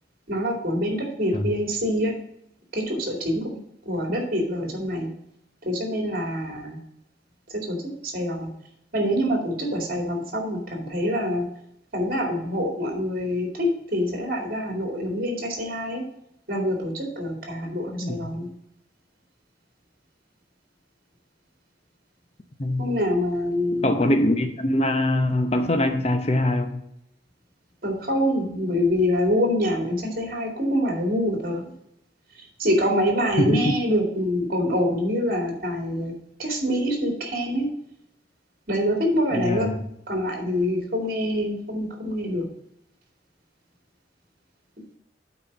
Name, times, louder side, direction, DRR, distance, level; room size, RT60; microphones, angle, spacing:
voice 1, 0.3-2.1 2.7-3.6 3.9-5.1 5.6-6.8 7.5-7.8 8.0-8.5 8.9-11.5 11.9-16.0 16.5-18.5 22.8-23.9 27.8-31.7 32.6-36.1 36.4-37.7 38.7-39.8 40.1-42.5, equal, 50° right, 2.5 m, -25 dB
voice 2, 18.0-18.3 22.6-22.9 23.8-26.8 33.4-33.7 39.3-39.8, left 1 dB, 35° left, 0.8 m, -23 dB
8.6 x 4.5 x 7.2 m
head